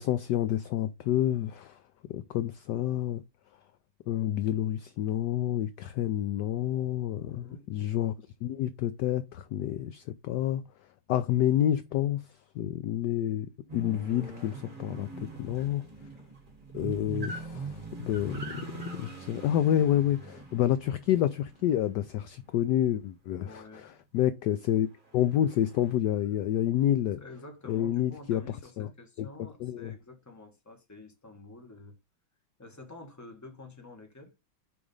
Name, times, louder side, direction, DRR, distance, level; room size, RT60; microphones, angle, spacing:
voice 1, 0.0-1.8 2.1-3.2 4.1-8.1 8.4-10.6 11.1-12.2 12.6-15.8 16.7-18.4 19.0-23.9 24.1-24.9 25.1-27.2 27.7-28.4 28.8-28.9 29.2-29.3 29.6-29.9, left 11 dB, 80° left, 0.9 m, -28 dB
voice 2, 7.3-7.7 23.4-24.0 27.2-31.9 32.6-34.3, left 2 dB, 10° left, 1.2 m, -49 dB
sound 1, 13.7-22.6 25.0-25.9, right 3 dB, 25° right, 1.7 m, -42 dB
5.0 x 4.9 x 5.4 m
omnidirectional pair, 2.4 m